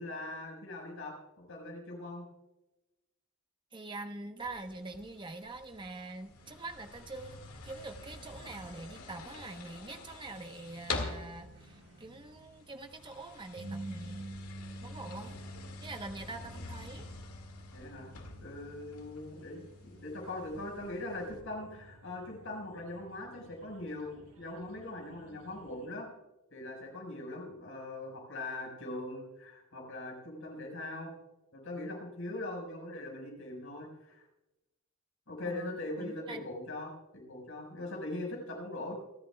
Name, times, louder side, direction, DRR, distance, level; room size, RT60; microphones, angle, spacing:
voice 1, 0.0-2.2 17.7-18.1 18.4-26.1 26.5-31.1 31.5-34.2 35.3-38.9, left 2 dB, 65° left, 0 dB, 5.2 m, -41 dB
voice 2, 3.7-14.2 14.8-15.4 15.8-17.1 35.4-36.5, right 2 dB, 20° right, 6 dB, 1.0 m, -44 dB
sound 1, 4.4-21.4, left 3 dB, 80° left, 2.1 m, -47 dB
sound 2, 6.3-25.9, right 1 dB, 75° right, 5.1 m, -51 dB
28.5 x 11.0 x 2.3 m, 0.96 s
head